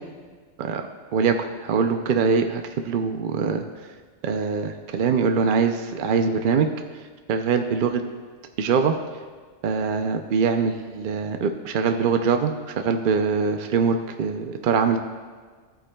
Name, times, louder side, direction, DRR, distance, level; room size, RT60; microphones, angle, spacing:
voice 1, 1.6-3.6 4.2-6.7 7.3-8.0 8.6-8.9 9.6-15.0, right 5 dB, 60° right, 6 dB, 0.6 m, -23 dB
15.0 x 8.5 x 2.2 m, 1.5 s
omnidirectional pair, 1.3 m